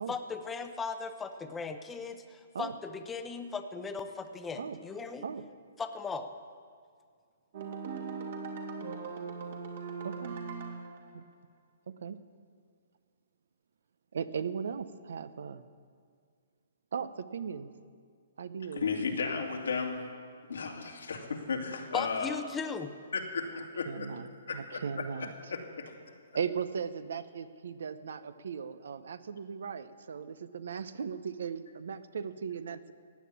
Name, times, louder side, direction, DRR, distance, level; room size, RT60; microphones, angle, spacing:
voice 1, 0.0-5.2 5.8-6.3 21.9-22.9, left 5 dB, 10° left, 7 dB, 0.8 m, -37 dB
sound 1, 7.5-11.0, right 5 dB, 55° right, 2.4 m, -39 dB
voice 2, 10.0-10.4 11.1-11.2 11.9-12.2 14.1-15.6 16.9-17.7 18.4-18.9 23.8-25.3 26.3-32.9, right 6 dB, 75° right, 14 dB, 0.9 m, -37 dB
voice 3, 18.7-20.0 20.5-22.4 23.1-24.1 24.5-25.0 25.5-26.0, left 5 dB, 90° left, 1 dB, 2.4 m, -34 dB
15.5 x 9.4 x 8.6 m, 2.1 s
hypercardioid pair, 155°, 0 cm